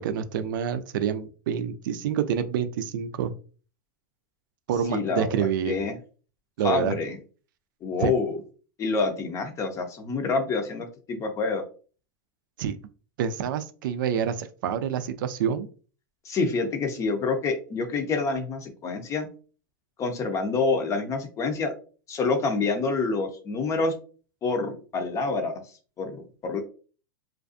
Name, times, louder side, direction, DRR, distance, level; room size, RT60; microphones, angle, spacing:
voice 1, 0.0-3.3 4.7-5.8 6.6-6.9 8.0-8.1 12.6-12.8 13.2-15.7, right 8 dB, 70° right, 10 dB, 0.4 m, -27 dB
voice 2, 4.9-6.0 6.6-7.2 7.8-8.4 8.8-11.6 16.2-19.3 20.0-21.7 22.1-23.9 24.4-25.6 26.0-26.6, left 4 dB, 30° left, 5 dB, 0.6 m, -27 dB
2.5 x 2.3 x 2.4 m, 0.38 s
supercardioid pair, 125°, 11 cm